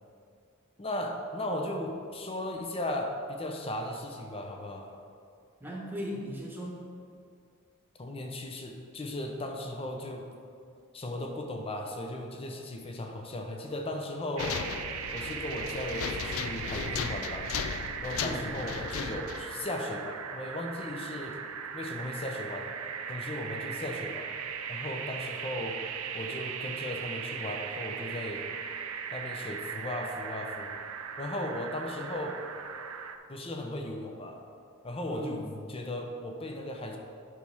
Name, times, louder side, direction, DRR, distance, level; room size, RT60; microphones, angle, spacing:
voice 1, 0.8-4.9 8.0-10.2 10.9-14.6 15.1-17.5 18.0-21.4 21.7-22.8 23.1-24.3 24.7-25.8 26.1-28.5 29.1-30.8 31.2-32.4 33.3-34.4 34.8-37.0, left 1 dB, 25° left, 3 dB, 0.7 m, -36 dB
voice 2, 5.6-6.9 18.2-18.5 35.1-35.5, equal, 10° right, -3 dB, 1.3 m, -38 dB
sound 1, 14.4-19.6, left 7 dB, 70° left, 0.4 m, -36 dB
sound 2, 14.4-33.2, right 7 dB, 85° right, 0.5 m, -38 dB
8.9 x 6.2 x 3.5 m, 2.4 s
head